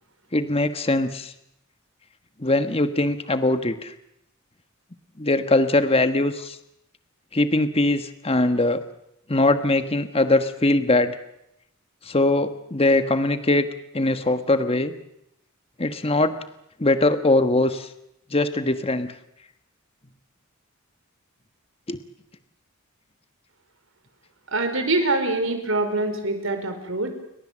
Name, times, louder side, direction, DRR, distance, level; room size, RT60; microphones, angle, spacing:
voice 1, 0.3-1.3 2.4-3.9 5.2-6.6 7.3-8.8 9.3-11.1 12.0-13.7 13.9-14.9 15.8-16.3 16.8-17.9 18.3-19.1 21.9-22.0, left 2 dB, 25° left, 10 dB, 1.4 m, -21 dB
voice 2, 24.5-27.2, right 2 dB, 65° right, 7 dB, 5.1 m, -24 dB
30.0 x 23.5 x 7.6 m, 0.80 s
head